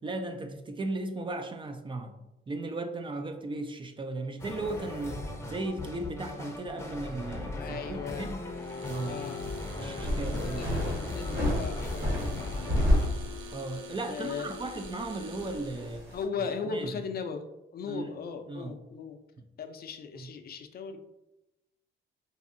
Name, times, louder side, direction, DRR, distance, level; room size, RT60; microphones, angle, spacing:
voice 1, 0.0-2.2 2.5-8.5 8.9-9.2 9.8-10.7 13.5-16.1 16.7-16.9 17.9-18.1 18.5-18.8 19.4-19.5 20.2-20.3, right 2 dB, 25° right, 6 dB, 0.4 m, -36 dB
sound 1, 4.4-13.1, left 2 dB, 15° left, 0.6 m, -39 dB
voice 2, 7.6-8.4 9.0-9.4 9.7-12.8 14.0-14.6 16.1-17.5 17.7-19.2 19.6-21.0, left 5 dB, 50° left, 7 dB, 0.4 m, -38 dB
sound 2, 8.5-16.0, left 3 dB, 85° right, 0.6 m, -46 dB
sound 3, 10.0-13.6 13.9-14.0 14.6-16.2, left 1 dB, 50° right, 1.4 m, -30 dB
4.1 x 2.7 x 2.5 m, 0.94 s
cardioid pair, 90°, 20 cm